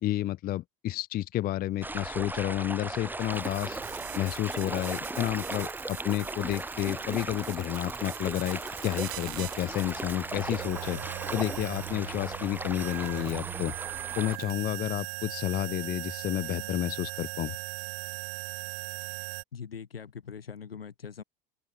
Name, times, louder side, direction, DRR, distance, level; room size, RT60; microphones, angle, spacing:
voice 1, 0.0-3.8 4.2-11.0 11.3-13.7 14.2-17.6, left 14 dB, 30° left, 0.6 m, -31 dB
sound 1, 1.8-14.4, right 2 dB, 5° right, 1.3 m, -37 dB
sound 2, 3.1-19.4, right 37 dB, 55° right, 1.5 m, -40 dB
sound 3, 4.6-16.9, right 10 dB, 75° right, 6.0 m, -63 dB
voice 2, 19.5-21.2, left 7 dB, 80° left, 5.2 m, -42 dB
open air
figure-of-eight pair, 75°, 29 cm